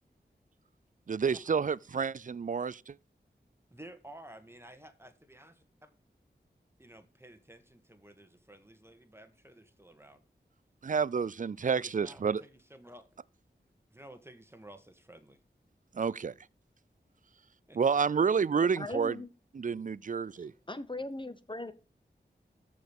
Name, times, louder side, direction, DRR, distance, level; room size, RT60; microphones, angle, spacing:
voice 1, 1.1-3.0 10.8-12.4 15.9-16.3 17.8-19.2 19.5-20.5, right 6 dB, 45° right, 0.4 m, -29 dB
voice 2, 3.7-5.9 6.8-10.2 11.8-13.1 13.9-15.4 17.7-17.8, right 1 dB, 15° right, 1.7 m, -53 dB
voice 3, 18.6-19.3 20.4-21.7, left 2 dB, 25° left, 0.9 m, -40 dB
14.0 x 5.2 x 5.3 m
wide cardioid pair, 55°, 18 cm